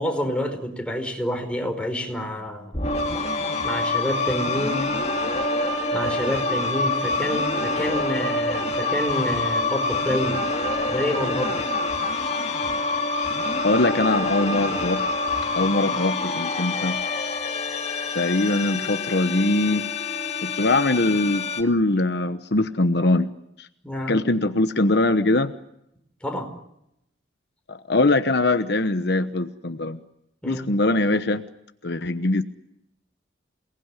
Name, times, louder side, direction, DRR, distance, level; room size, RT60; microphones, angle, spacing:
voice 1, 0.0-2.7 3.6-4.9 5.9-10.4 10.9-11.7 23.8-24.2 26.2-26.5 30.4-30.7, left 1 dB, 5° left, 3 dB, 4.9 m, -28 dB
sound 1, 2.7-21.6, left 2 dB, 35° left, 2.5 m, -26 dB
voice 2, 13.6-15.0 15.5-17.0 18.1-19.9 20.4-23.3 23.6-23.7 24.1-25.5 27.7-30.0 30.4-31.4 31.8-32.4, left 2 dB, 60° left, 9 dB, 1.1 m, -22 dB
28.5 x 19.5 x 9.9 m, 0.81 s
head